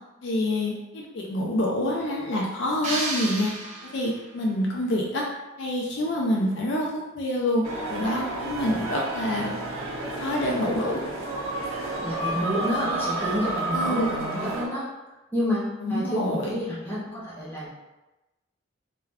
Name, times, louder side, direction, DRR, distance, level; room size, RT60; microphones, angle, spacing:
voice 1, 0.2-3.5 3.9-5.2 5.6-6.9 7.2-7.6 7.9-9.5 10.2-11.0 13.7-14.2 15.8-16.5, left 1 dB, 60° left, -2 dB, 0.4 m, -26 dB
sound 1, 2.8-4.4, right 2 dB, 35° right, 0.4 m, -32 dB
sound 2, 7.6-14.7, right 2 dB, 85° right, 0.6 m, -31 dB
voice 2, 12.0-14.9 15.3-17.7, equal, 10° left, -8 dB, 0.7 m, -29 dB
2.3 x 2.2 x 3.3 m, 1.1 s
head